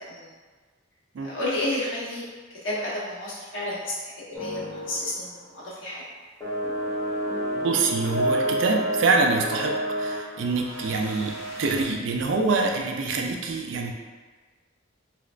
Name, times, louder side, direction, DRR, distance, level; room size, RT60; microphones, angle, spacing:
voice 1, 1.2-2.2 2.5-6.0, left 1 dB, 75° left, -7 dB, 1.0 m, -31 dB
sound 1, 4.3-5.1 5.4-5.7 6.4-11.8, equal, 15° left, 0.7 m, -30 dB
voice 2, 7.5-13.9, right 3 dB, 70° right, 2 dB, 0.4 m, -25 dB
3.1 x 2.9 x 2.4 m, 1.4 s
head